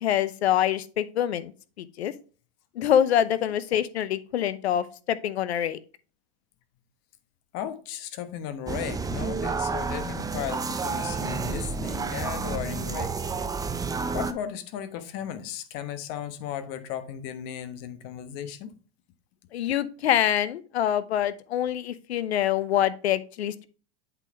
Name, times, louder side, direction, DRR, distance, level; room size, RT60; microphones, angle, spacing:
voice 1, 0.0-1.5 1.8-2.1 2.8-5.8 19.5-23.7, left 10 dB, 85° left, 0.7 m, -25 dB
voice 2, 7.5-13.2 14.1-18.7, left 10 dB, 50° left, 1.2 m, -35 dB
sound 1, 8.7-14.3, right 4 dB, 10° right, 0.6 m, -30 dB
8.0 x 4.0 x 4.5 m
hypercardioid pair, 105°, 32 cm